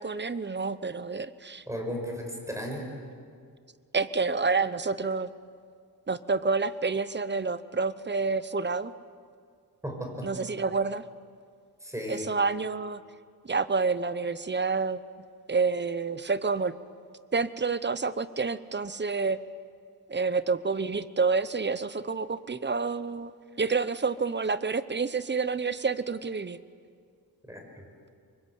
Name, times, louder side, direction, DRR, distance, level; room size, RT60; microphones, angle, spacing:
voice 1, 0.0-1.6 3.9-5.3 6.1-8.9 10.2-11.0 12.1-13.0 13.4-15.0 15.5-16.7 17.3-19.4 20.1-23.3 23.6-26.6, right 4 dB, 30° right, 14 dB, 0.8 m, -28 dB
voice 2, 1.7-2.9 9.8-10.3 11.8-12.2 27.5-27.6, equal, 10° right, 1 dB, 6.1 m, -35 dB
26.0 x 23.5 x 8.3 m, 2.1 s
wide cardioid pair, 105°, 38 cm